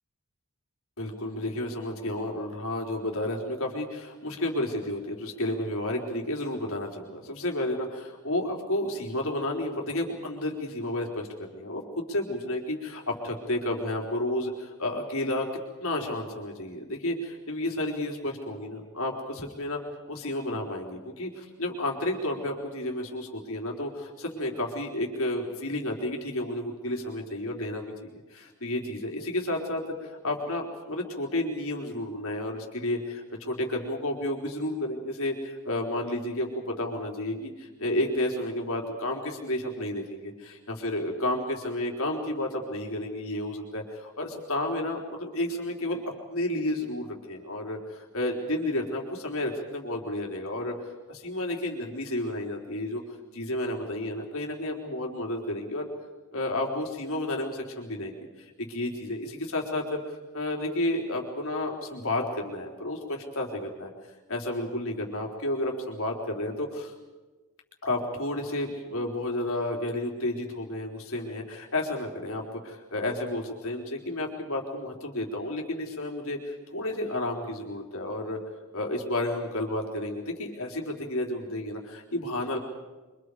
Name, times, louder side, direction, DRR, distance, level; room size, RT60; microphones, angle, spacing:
voice 1, 1.0-15.5 15.8-19.1 19.6-19.8 20.1-46.0 46.3-50.7 51.1-53.0 53.3-55.9 56.3-63.9 64.3-66.9 67.8-72.6 72.9-78.4 78.7-82.6, left 1 dB, 65° left, 1 dB, 4.3 m, -31 dB
29.5 x 25.0 x 5.0 m, 1.2 s
head